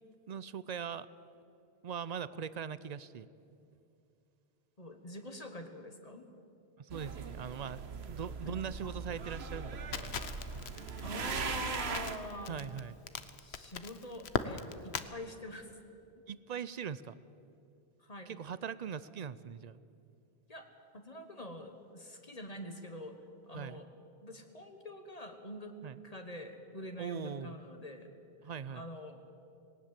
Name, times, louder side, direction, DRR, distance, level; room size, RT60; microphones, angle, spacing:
voice 1, 0.3-1.1 1.8-3.3 6.8-7.8 8.1-10.1 12.5-13.0 16.3-17.2 18.3-19.8 23.5-23.8 25.8-26.0 27.0-27.6 28.4-28.9, right 7 dB, 50° right, 17 dB, 0.6 m, -41 dB
voice 2, 4.8-6.2 8.4-8.6 11.0-12.6 13.4-15.7 18.0-18.4 20.5-20.7 20.9-23.2 23.5-23.9 24.2-25.7 26.0-28.1 28.7-29.2, left 1 dB, 40° left, 6 dB, 1.4 m, -45 dB
sound 1, 6.9-12.2, right 5 dB, 80° right, 1.3 m, -40 dB
Crackle, 9.9-15.1, left 7 dB, 80° left, 1.1 m, -40 dB
19.0 x 18.5 x 7.5 m, 2.6 s
omnidirectional pair, 1.1 m